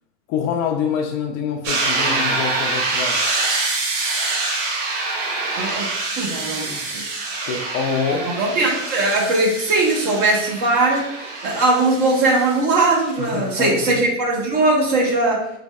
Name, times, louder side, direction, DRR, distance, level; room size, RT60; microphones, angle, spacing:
voice 1, 0.3-3.2 7.4-8.3 13.2-14.0, left 6 dB, 45° left, 3 dB, 0.6 m, -25 dB
sound 1, 1.6-13.3, right 3 dB, 70° right, 1.1 m, -25 dB
voice 2, 5.6-5.9 6.2-7.0 8.2-11.0 11.4-15.4, right 2 dB, 50° right, -2 dB, 1.4 m, -19 dB
4.1 x 3.2 x 2.3 m, 0.82 s
hypercardioid pair, 100°, 38 cm